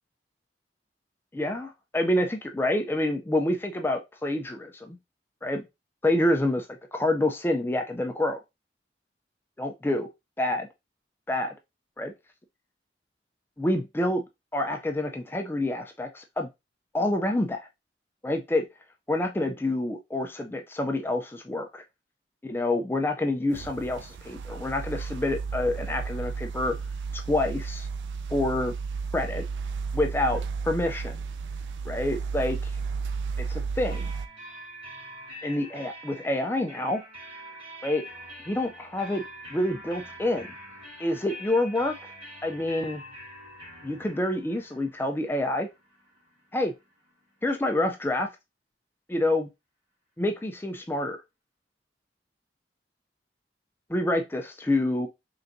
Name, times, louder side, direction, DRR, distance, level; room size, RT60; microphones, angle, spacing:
voice 1, 1.3-5.0 5.4-5.6 6.0-8.4 9.6-10.1 10.4-10.7 11.3-11.5 12.0-12.1 13.6-14.2 14.5-16.5 16.9-17.7 18.2-18.6 19.1-21.8 22.4-26.8 27.1-27.9 28.3-28.7 29.1-29.5 29.9-31.2 31.8-32.7 33.4-34.1 35.4-37.0 37.8-38.1 38.5-39.2 39.5-40.5 41.0-42.1 42.4-43.0 43.8-45.7 46.5-46.7 47.4-48.3 49.1-49.5 50.2-51.2 53.9-55.1, left 1 dB, 10° left, 4 dB, 0.4 m, -27 dB
sound 1, 23.5-34.3, right 5 dB, 80° right, 0.3 m, -33 dB
sound 2, 33.9-47.5, equal, 30° right, 2.0 m, -45 dB
4.0 x 3.4 x 2.6 m, 0.22 s
head